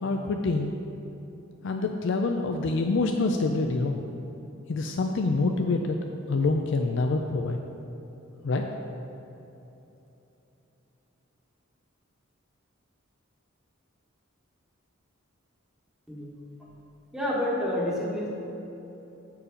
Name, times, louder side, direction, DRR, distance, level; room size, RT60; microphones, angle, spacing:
voice 1, 0.0-0.7 1.6-4.0 4.7-6.0 6.3-7.6 8.4-8.6, left 3 dB, 60° left, 4 dB, 0.4 m, -26 dB
voice 2, 17.1-18.3, left 1 dB, 5° right, -6 dB, 1.2 m, -28 dB
8.6 x 4.7 x 5.1 m, 3.0 s
head